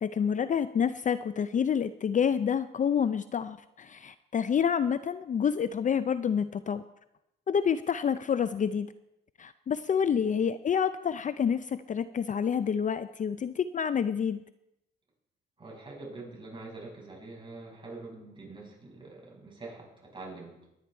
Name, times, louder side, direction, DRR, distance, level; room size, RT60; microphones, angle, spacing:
voice 1, 0.0-6.8 7.5-8.9 9.4-14.4, left 7 dB, 40° left, 13 dB, 0.5 m, -28 dB
voice 2, 15.6-20.5, right 3 dB, 25° right, -2 dB, 6.6 m, -45 dB
23.5 x 9.9 x 4.5 m, 0.87 s
cardioid pair, 90°, 20 cm